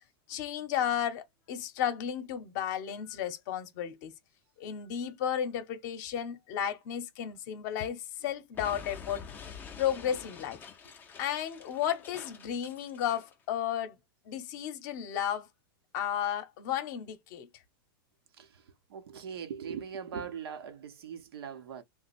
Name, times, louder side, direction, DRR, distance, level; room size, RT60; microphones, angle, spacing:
voice 1, 0.3-4.1 4.6-9.2 9.8-10.6 11.2-14.0 14.3-15.5 15.9-17.5, left 9 dB, 50° left, 0.7 m, -33 dB
Explosion, 8.5-13.3, left 7 dB, 15° left, 0.4 m, -47 dB
voice 2, 18.9-21.8, right 7 dB, 80° right, 0.7 m, -40 dB
2.8 x 2.1 x 4.1 m
supercardioid pair, 145°, 13 cm